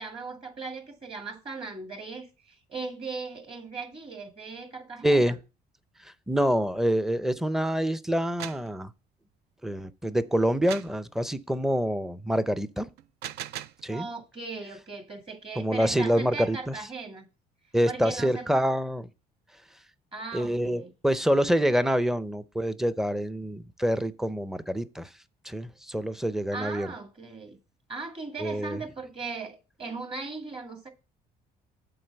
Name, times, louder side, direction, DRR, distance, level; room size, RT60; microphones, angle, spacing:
voice 1, 0.0-5.4 13.9-17.3 17.9-18.5 20.1-20.9 26.5-27.6 27.9-30.9, right 4 dB, 35° right, 1.9 m, -38 dB
voice 2, 5.0-5.4 6.0-8.9 9.6-12.9 13.8-14.1 15.6-16.8 17.7-19.1 20.3-25.1 25.4-26.9 28.4-28.8, equal, ahead, 0.5 m, -26 dB
sound 1, 8.2-8.7 10.7-11.0 13.0-13.8, right 12 dB, 80° right, 0.4 m, -38 dB
7.8 x 4.1 x 6.8 m
cardioid pair, 110°, 17 cm